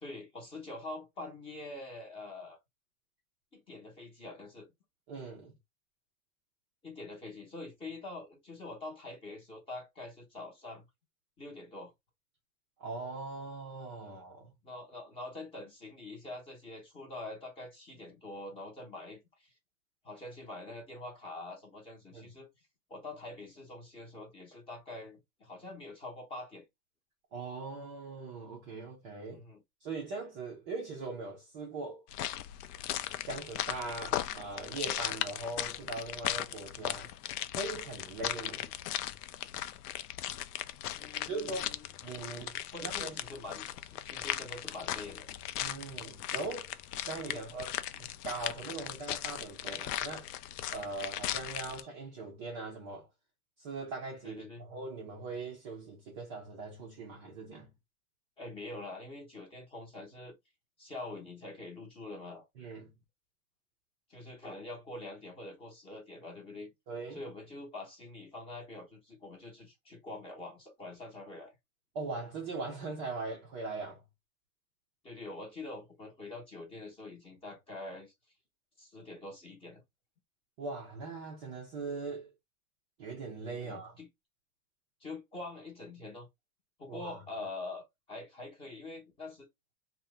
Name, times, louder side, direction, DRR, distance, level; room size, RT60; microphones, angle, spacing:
voice 1, 0.0-2.6 3.5-4.7 6.8-10.9 11.4-11.9 14.6-19.5 20.0-22.5 22.9-26.6 29.3-29.6 36.9-37.1 38.5-38.7 41.0-41.9 42.7-45.3 47.3-47.4 47.9-48.1 54.2-54.7 58.4-60.4 60.8-62.5 64.1-66.7 67.1-71.5 75.0-78.1 78.8-79.8 83.6-84.1 85.0-86.3 86.8-89.5, left 2 dB, 10° left, 0.7 m, -45 dB
voice 2, 5.1-5.5 12.8-14.5 22.1-22.3 27.3-29.4 29.8-32.0 33.2-37.1 37.6-38.6 41.3-41.7 42.0-43.2 45.6-46.7 47.1-47.7 48.2-50.3 50.7-53.1 53.6-57.7 62.6-62.9 66.9-67.2 71.9-74.0 80.6-82.3 83.0-84.0 86.9-87.2, right 3 dB, 20° right, 0.4 m, -40 dB
sound 1, 32.1-51.8, left 12 dB, 85° left, 0.5 m, -38 dB
2.7 x 2.1 x 3.4 m
supercardioid pair, 155°, 45 cm